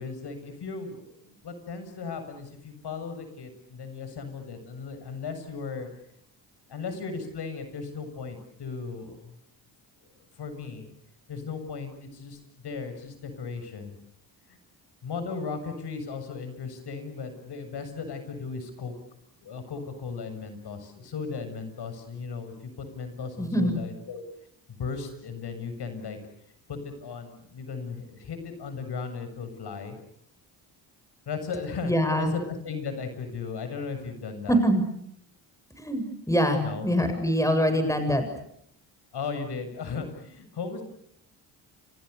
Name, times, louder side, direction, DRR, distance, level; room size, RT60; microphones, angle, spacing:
voice 1, 0.0-5.9 6.7-9.3 10.3-10.9 11.3-14.0 14.5-14.6 15.0-18.9 19.4-24.2 24.7-26.2 26.7-30.0 31.3-34.6 36.6-36.9 39.1-40.8, left 5 dB, 65° left, 8 dB, 7.4 m, -36 dB
voice 2, 23.4-23.8 31.8-32.3 34.5-34.8 35.8-38.2, equal, 5° left, 7 dB, 7.8 m, -24 dB
30.0 x 26.5 x 6.9 m, 0.71 s
supercardioid pair, 70°, 44 cm